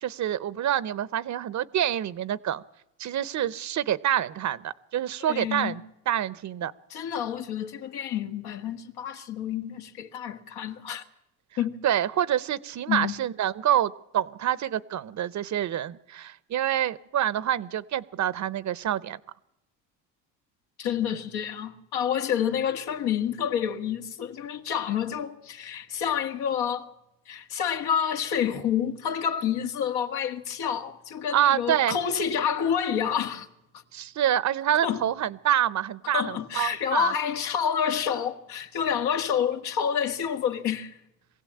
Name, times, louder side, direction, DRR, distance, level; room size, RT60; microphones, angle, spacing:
voice 1, 0.0-2.6 3.0-6.7 11.8-19.2 31.3-32.0 33.9-37.1, right 11 dB, 45° right, 0.8 m, -27 dB
voice 2, 5.2-5.8 6.9-11.0 11.6-11.8 12.9-13.1 20.8-26.9 27.3-33.5 34.8-35.0 36.1-41.0, left 8 dB, 70° left, 1.8 m, -28 dB
23.0 x 16.0 x 8.6 m
supercardioid pair, 90°, 40 cm